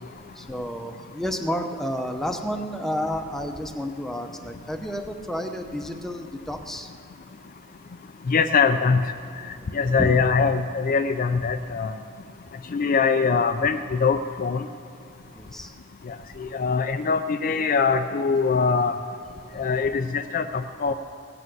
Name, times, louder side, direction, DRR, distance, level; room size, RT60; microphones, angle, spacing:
voice 1, 0.3-6.9 9.6-10.1 15.3-15.7, equal, ahead, 4 dB, 0.7 m, -31 dB
voice 2, 8.3-9.0 9.7-11.9 12.7-14.7 16.1-19.0 19.6-20.9, left 5 dB, 40° left, 8 dB, 0.4 m, -22 dB
18.0 x 8.2 x 7.7 m, 2.4 s
head